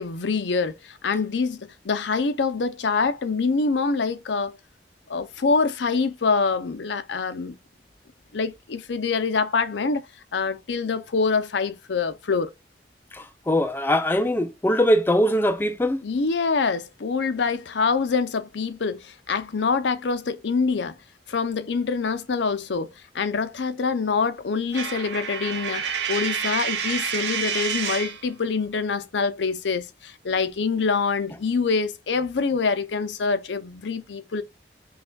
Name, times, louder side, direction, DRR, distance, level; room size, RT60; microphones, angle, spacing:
voice 1, 0.0-4.6 5.1-7.6 8.3-10.0 10.3-12.5 16.0-21.0 21.3-22.9 23.1-34.4, left 4 dB, 85° left, 0.6 m, -25 dB
voice 2, 13.1-16.0, equal, 10° left, 0.3 m, -22 dB
Coin (dropping), 24.7-28.2, right 7 dB, 80° right, 0.9 m, -28 dB
5.8 x 2.4 x 2.2 m
head